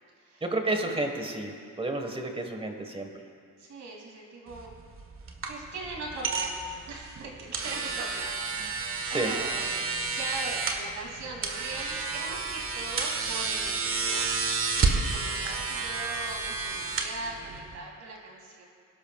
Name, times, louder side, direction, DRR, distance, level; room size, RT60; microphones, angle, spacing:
voice 1, 0.4-3.1 9.1-9.3, right 2 dB, 20° right, 4 dB, 1.5 m, -31 dB
voice 2, 3.6-4.8 5.4-14.3 14.7-18.6, right 2 dB, 65° right, -1 dB, 2.9 m, -40 dB
sound 1, 4.5-17.8, right 4 dB, 45° right, 1.5 m, -31 dB
22.5 x 11.5 x 2.4 m, 2.2 s
cardioid pair, 90°, 30 cm